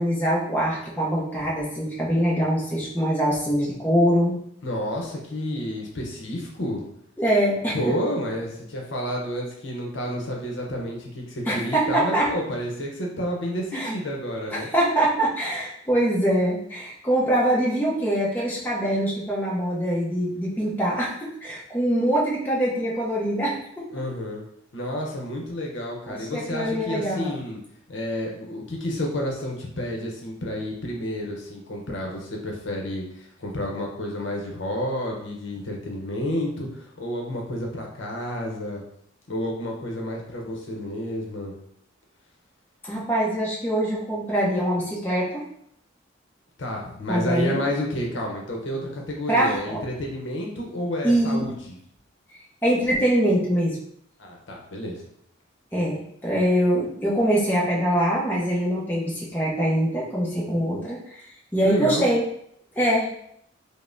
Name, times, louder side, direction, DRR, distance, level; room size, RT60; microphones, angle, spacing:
voice 1, 0.0-4.4 7.2-8.0 11.5-12.3 13.7-13.9 14.5-23.9 26.1-27.3 42.8-45.4 47.1-47.6 49.3-49.8 51.0-51.4 52.6-53.8 55.7-61.2 61.5-62.2 62.8-63.1, right 1 dB, 10° left, -6 dB, 0.7 m, -23 dB
voice 2, 4.6-6.8 7.7-14.7 23.9-24.4 24.7-27.6 27.9-38.8 39.3-41.5 46.6-51.8 54.2-55.1 61.6-62.1, equal, 65° left, 0 dB, 0.7 m, -30 dB
5.1 x 2.1 x 2.6 m, 0.72 s
head